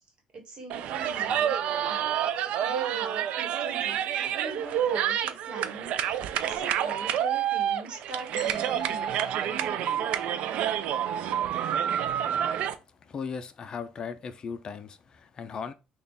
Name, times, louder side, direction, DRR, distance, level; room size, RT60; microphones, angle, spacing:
voice 1, 0.3-1.5 1.8-2.0 2.6-9.1 9.4-10.1, right 2 dB, 45° right, 1.4 m, -42 dB
sound 1, 0.7-12.7, right 10 dB, 65° right, 0.4 m, -28 dB
sound 2, 8.4-10.5, left 1 dB, 15° right, 2.0 m, -48 dB
voice 2, 13.0-15.7, left 6 dB, 35° left, 0.4 m, -37 dB
3.4 x 2.3 x 3.9 m
cardioid pair, 110°, 2 cm